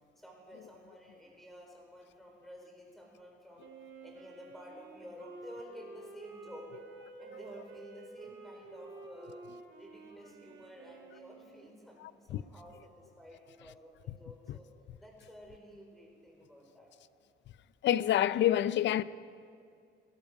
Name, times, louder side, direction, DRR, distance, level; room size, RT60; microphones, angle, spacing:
voice 1, 0.2-3.7 4.0-6.7 7.2-9.4 9.8-14.7 15.0-16.9, equal, ahead, 4.1 m, -52 dB
Wind instrument woodwind instrument, 3.6-11.7, right 3 dB, 75° right, 2.6 m, -51 dB
voice 2, 17.8-19.0, left 12 dB, 65° left, 0.5 m, -26 dB
17.5 x 12.0 x 5.4 m
cardioid pair, 90°, 20 cm